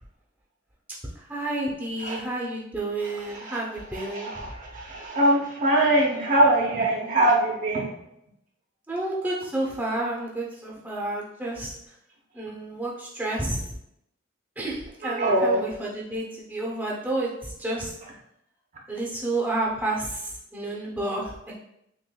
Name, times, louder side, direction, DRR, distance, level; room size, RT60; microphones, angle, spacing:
voice 1, 1.3-4.3 8.9-11.7 12.3-13.6 14.6-17.9 18.9-20.2 20.5-21.6, right 2 dB, 10° right, -4 dB, 0.8 m, -30 dB
voice 2, 3.9-4.4 4.7-7.9 15.0-15.6, right 1 dB, 45° right, -1 dB, 0.7 m, -22 dB
6.1 x 2.5 x 2.3 m, 0.78 s
head